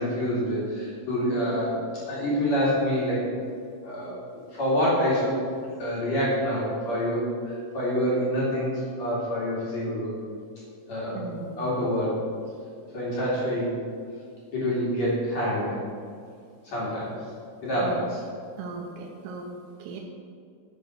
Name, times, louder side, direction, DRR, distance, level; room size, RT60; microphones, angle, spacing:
voice 1, 0.0-1.8 2.1-3.3 3.8-4.2 4.6-5.4 5.8-10.2 10.9-11.3 11.6-12.3 12.9-13.8 14.5-15.8 16.6-17.1 17.6-18.2, equal, 45° left, -7 dB, 2.8 m, -26 dB
voice 2, 11.1-11.7 17.8-18.0 18.6-19.5 19.8-20.0, right 4 dB, 90° right, 1 dB, 3.5 m, -37 dB
9.3 x 6.7 x 6.2 m, 2.2 s
omnidirectional pair, 5.7 m